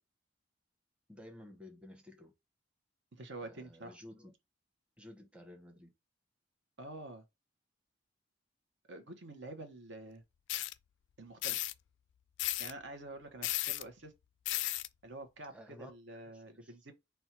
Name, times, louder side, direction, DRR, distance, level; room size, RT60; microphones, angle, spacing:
voice 1, 1.1-2.3 3.4-4.3 5.0-5.9 15.5-16.8, left 1 dB, 5° right, 0.9 m, -54 dB
voice 2, 3.1-4.0 6.8-7.2 8.9-10.2 11.2-11.6 12.6-14.1 15.0-16.9, right 2 dB, 65° right, 0.9 m, -47 dB
sound 1, 10.5-10.7 11.4-11.7 12.4-12.7 13.4-13.8 14.5-14.9, left 16 dB, 65° left, 0.3 m, -34 dB
4.3 x 2.3 x 4.4 m
head